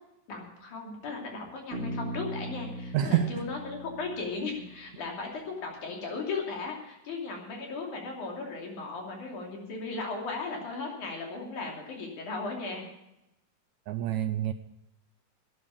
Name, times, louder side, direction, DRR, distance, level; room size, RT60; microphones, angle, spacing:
voice 1, 0.3-12.8, left 4 dB, 70° left, 0 dB, 4.2 m, -36 dB
Bass guitar, 1.7-5.4, right 1 dB, 45° right, 3.3 m, -40 dB
voice 2, 2.9-3.4 13.9-14.5, right 11 dB, 80° right, 10 dB, 1.7 m, -27 dB
12.5 x 9.7 x 7.1 m, 0.89 s
omnidirectional pair, 3.7 m